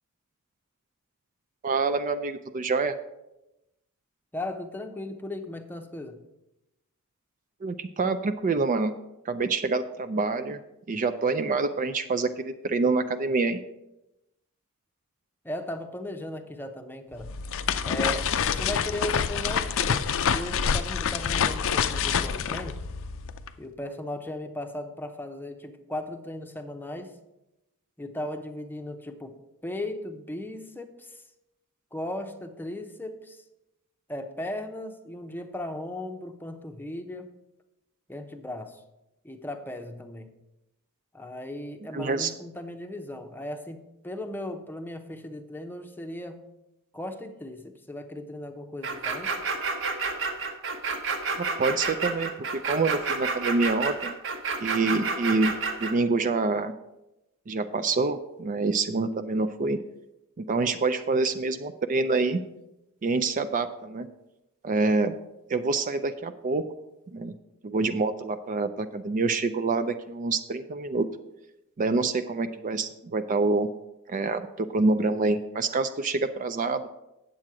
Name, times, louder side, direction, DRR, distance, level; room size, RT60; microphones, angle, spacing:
voice 1, 1.6-3.0 7.6-8.9 9.3-10.6 10.9-13.6 41.9-42.3 51.4-54.1 54.6-55.5 55.8-56.7 57.5-59.8 60.4-62.4 63.0-64.1 64.6-65.2 65.5-66.6 67.1-67.3 67.6-71.1 71.8-73.7 74.1-76.9, right 3 dB, 35° right, 9 dB, 0.4 m, -26 dB
voice 2, 4.3-6.2 15.4-17.3 17.8-20.0 20.3-22.8 23.6-27.2 28.0-29.4 29.6-31.2 31.9-33.4 34.1-37.4 38.1-38.8 39.2-40.3 41.1-46.4 46.9-49.4, left 1 dB, 10° left, 6 dB, 0.7 m, -37 dB
sound 1, 17.1-23.5, left 7 dB, 65° left, 0.5 m, -27 dB
sound 2, 48.8-55.9, right 4 dB, 60° right, 1.2 m, -29 dB
9.0 x 7.5 x 4.8 m, 0.93 s
head